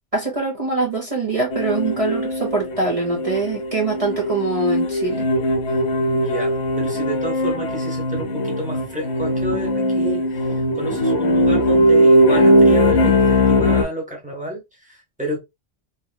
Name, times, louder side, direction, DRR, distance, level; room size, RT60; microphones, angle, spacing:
voice 1, 0.1-5.3, right 3 dB, 35° right, 0.9 m, -23 dB
sound 1, 1.5-13.8, equal, 65° left, 0.9 m, -19 dB
voice 2, 5.7-15.4, right 1 dB, 5° right, 1.1 m, -30 dB
2.9 x 2.9 x 2.2 m
omnidirectional pair, 1.2 m